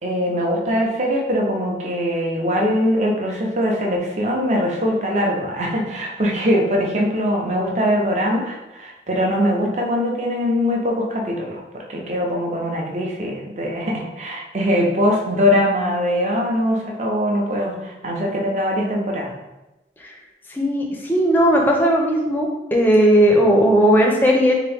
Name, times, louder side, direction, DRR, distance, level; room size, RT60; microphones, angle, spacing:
voice 1, 0.0-11.6 11.9-19.3, equal, 40° right, -1 dB, 0.6 m, -22 dB
voice 2, 20.5-24.5, equal, 10° left, 0 dB, 0.5 m, -16 dB
3.4 x 2.9 x 3.4 m, 1.0 s
head